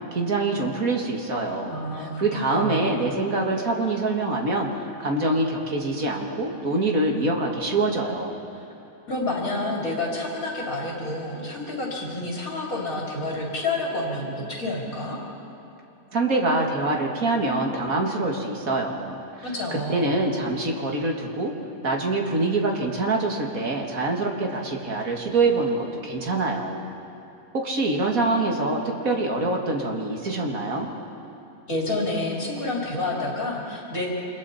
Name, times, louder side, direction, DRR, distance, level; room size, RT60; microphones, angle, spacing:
voice 1, 0.1-4.7 5.0-8.3 16.1-19.2 19.9-21.5 21.8-26.8 27.5-30.9, right 2 dB, 80° right, 0 dB, 2.6 m, -25 dB
voice 2, 1.7-2.9 8.5-8.6 9.1-15.2 19.4-20.1 31.7-34.1, left 2 dB, 75° left, -4 dB, 4.0 m, -29 dB
29.0 x 26.0 x 4.3 m, 2.8 s
omnidirectional pair, 1.5 m